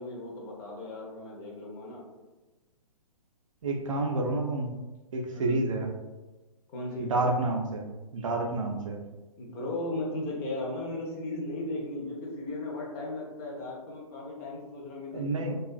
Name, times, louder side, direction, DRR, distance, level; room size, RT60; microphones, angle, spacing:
voice 1, 0.0-2.0 5.3-5.6 6.7-7.1 9.4-15.6, left 2 dB, 25° left, -3 dB, 0.6 m, -36 dB
voice 2, 3.6-4.7 5.1-5.9 7.1-7.9 8.1-9.0 15.1-15.6, right 2 dB, 60° right, 2 dB, 0.4 m, -29 dB
2.4 x 2.3 x 2.4 m, 1.1 s
figure-of-eight pair, 125°, 19 cm